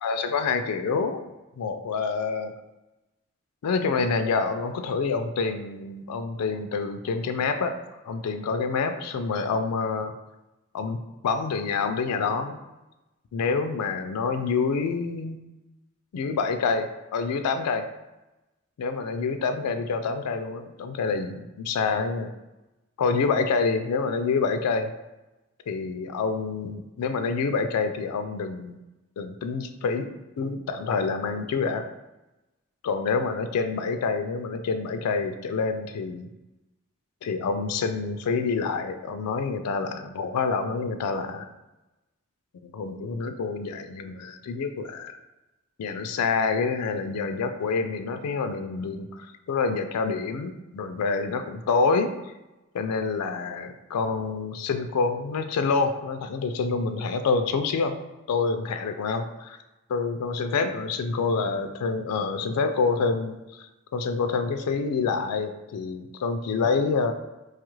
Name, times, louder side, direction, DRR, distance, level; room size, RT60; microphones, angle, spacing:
voice 1, 0.0-2.5 3.6-7.7 8.0-10.1 10.7-12.6 13.3-15.4 16.1-17.9 18.8-22.3 23.0-24.9 25.7-28.8 29.2-30.1 30.4-31.9 32.8-36.3 37.2-41.5 42.6-45.1 45.8-52.1 52.7-58.0 58.3-59.6 59.9-67.1, left 4 dB, 90° left, 7 dB, 0.4 m, -27 dB
4.6 x 2.4 x 3.0 m, 1.0 s
head